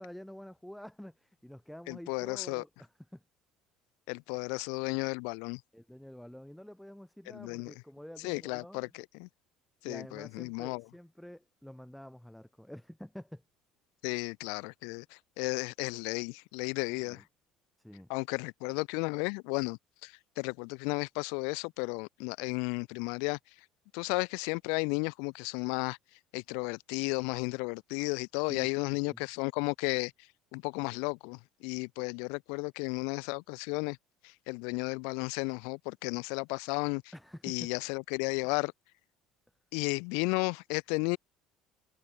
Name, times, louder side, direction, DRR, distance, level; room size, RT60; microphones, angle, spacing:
voice 1, 0.0-3.2 5.7-8.9 9.8-13.4 16.9-17.2 17.8-18.1 28.5-28.7 29.1-29.2 37.1-37.7, equal, ahead, 5.6 m, -48 dB
voice 2, 1.9-2.6 4.1-5.6 7.3-7.7 8.2-9.3 9.8-10.8 14.0-17.2 18.1-23.4 23.9-26.0 26.3-30.1 30.5-34.0 34.2-37.0 37.4-38.7 39.7-41.2, left 36 dB, 85° left, 1.4 m, -33 dB
cardioid pair, 150°, 0 cm